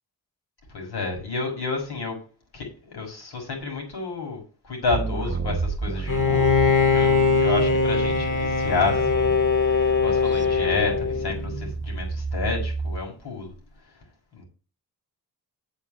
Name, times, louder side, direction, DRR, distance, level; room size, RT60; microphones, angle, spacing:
voice 1, 0.7-2.2 2.5-6.5 6.9-9.3 9.6-13.5 14.3-14.4, left 4 dB, 70° left, 6.4 m, -30 dB
sound 1, 4.9-13.0, right 4 dB, 30° right, 1.2 m, -31 dB
Bowed string instrument, 6.1-11.7, left 5 dB, 50° left, 3.3 m, -21 dB
7.8 x 6.2 x 7.8 m
supercardioid pair, 50°, 40 cm